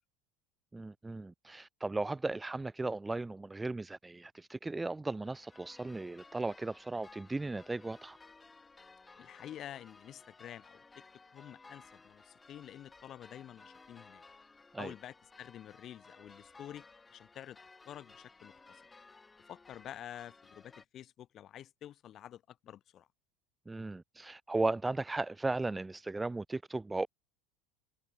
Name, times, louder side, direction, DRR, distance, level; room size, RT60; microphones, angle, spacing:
voice 1, 0.7-8.2 14.7-14.9 23.7-27.1, right 2 dB, 10° right, 0.3 m, -36 dB
sound 1, 5.2-20.8, left 3 dB, 15° left, 2.8 m, -58 dB
voice 2, 9.2-11.1 11.3-14.2 14.8-17.6 17.9-18.8 19.4-23.1, left 11 dB, 45° left, 2.5 m, -49 dB
supercardioid pair, 100°, 0 cm